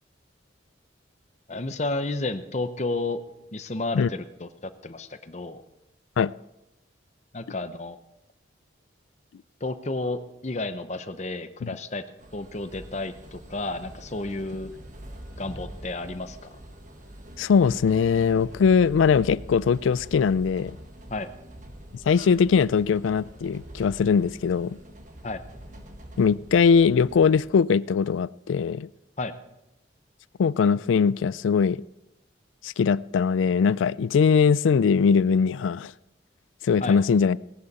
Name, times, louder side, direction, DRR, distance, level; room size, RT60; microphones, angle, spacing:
voice 1, 1.5-3.2 3.5-5.6 7.3-8.0 9.6-12.0 12.3-14.7 15.4-16.4 21.1-21.3 25.2-25.4 29.2-29.3 36.8-37.0, left 2 dB, 35° left, 10 dB, 0.7 m, -31 dB
sound 1, 12.2-27.5, right 1 dB, 40° right, 1.5 m, -44 dB
voice 2, 17.4-20.8 22.1-24.8 26.2-28.9 30.4-31.8 32.6-35.9 36.6-37.4, left 6 dB, 90° left, 20 dB, 0.3 m, -21 dB
17.5 x 11.0 x 4.2 m, 0.91 s
head